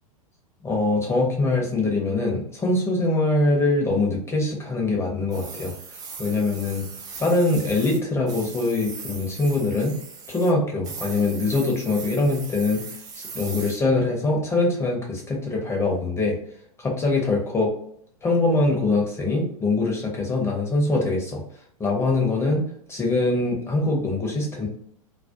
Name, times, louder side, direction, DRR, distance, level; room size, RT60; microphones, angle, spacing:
voice 1, 0.6-5.7 6.2-6.8 7.2-9.9 10.3-12.8 13.3-16.4 16.8-17.7 18.2-21.4 21.8-24.7, left 2 dB, 15° left, -1 dB, 0.7 m, -23 dB
sound 1, 5.3-8.0 8.3-10.5 10.8-13.8, right 4 dB, 20° right, 0.4 m, -39 dB
2.3 x 2.2 x 2.6 m, 0.66 s
figure-of-eight pair, 95°, 19 cm